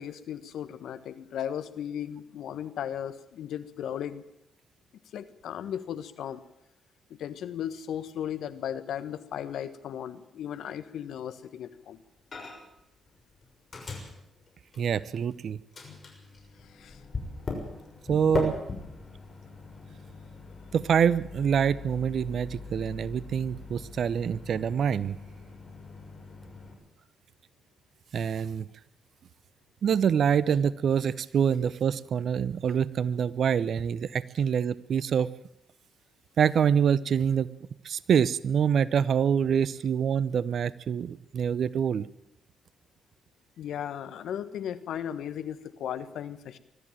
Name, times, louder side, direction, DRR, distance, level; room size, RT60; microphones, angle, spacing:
voice 1, 0.0-4.2 5.1-6.4 7.2-12.0 16.8-16.9 43.6-46.6, left 9 dB, 70° left, 12 dB, 1.3 m, -36 dB
Microwave oven, 12.3-12.8 13.1-15.3 15.7-26.7, left 3 dB, 45° left, 6.4 m, -40 dB
voice 2, 14.8-15.6 18.1-18.6 20.7-25.2 28.1-28.7 29.8-35.3 36.4-37.5 37.8-42.1, right 7 dB, 65° right, 19 dB, 0.8 m, -26 dB
21.5 x 13.5 x 9.0 m, 0.82 s
hypercardioid pair, 45°, 0 cm